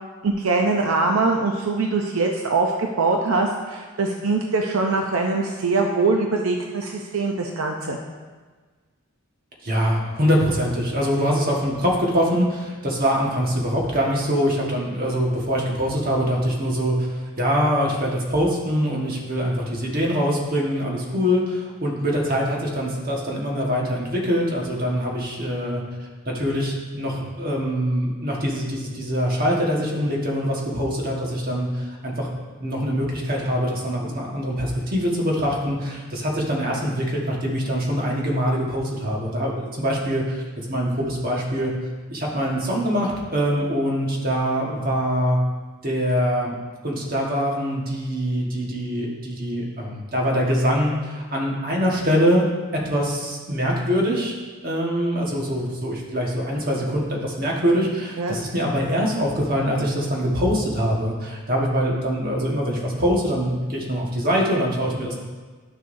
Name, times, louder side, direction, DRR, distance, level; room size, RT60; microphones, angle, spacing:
voice 1, 0.2-8.0 58.2-58.4, right 3 dB, 75° right, 2 dB, 0.6 m, -22 dB
voice 2, 9.6-25.8 26.3-32.3 32.6-40.4 40.7-41.7 42.1-45.4 45.8-46.5 46.8-52.4 52.7-54.3 54.6-65.2, equal, 45° right, -2 dB, 1.4 m, -23 dB
10.5 x 6.5 x 2.6 m, 1.4 s
head